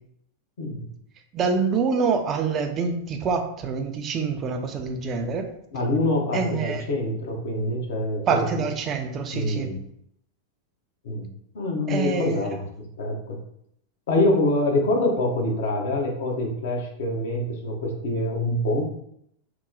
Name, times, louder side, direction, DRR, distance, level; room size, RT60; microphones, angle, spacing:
voice 1, 0.6-0.9 5.7-8.4 9.3-9.8 11.0-11.2 11.5-12.6 13.0-13.4 14.1-18.8, left 1 dB, 70° left, 0 dB, 0.8 m, -25 dB
voice 2, 1.3-5.5 6.3-6.8 8.3-9.8 11.9-12.4, right 5 dB, 35° right, 5 dB, 0.5 m, -26 dB
2.9 x 2.0 x 3.7 m, 0.72 s
hypercardioid pair, 100°, 0 cm